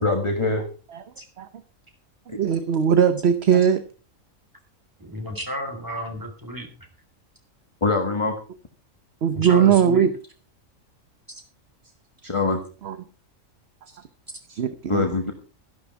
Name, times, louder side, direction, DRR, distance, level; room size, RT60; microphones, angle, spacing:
voice 1, 0.0-0.7 7.8-8.4 12.2-12.6 14.9-15.3, left 3 dB, 25° left, 4 dB, 1.5 m, -23 dB
voice 2, 2.3-3.8 9.2-10.1 12.8-13.0 13.8-14.1 14.5-15.1, right 8 dB, 55° right, 11 dB, 1.1 m, -20 dB
voice 3, 5.0-6.7 9.3-10.1 11.3-11.4, equal, 15° right, 5 dB, 3.3 m, -33 dB
13.0 x 11.5 x 4.6 m, 0.36 s
omnidirectional pair, 1.4 m